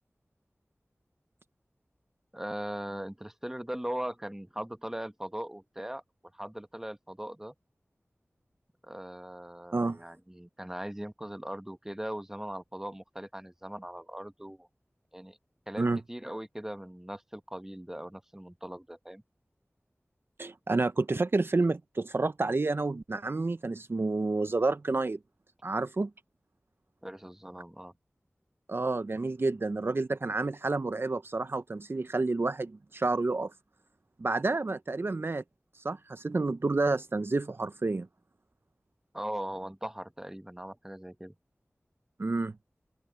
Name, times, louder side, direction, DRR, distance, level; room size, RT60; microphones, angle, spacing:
voice 1, 2.3-6.0 6.3-7.5 8.8-14.7 15.1-15.4 15.7-19.2 27.0-27.9 39.1-41.3, right 1 dB, 10° right, 0.9 m, -39 dB
voice 2, 20.4-25.2 25.6-26.1 28.7-33.5 34.2-35.4 35.8-38.1 42.2-42.6, right 3 dB, 55° right, 0.5 m, -29 dB
wide cardioid pair, 60°, 5 cm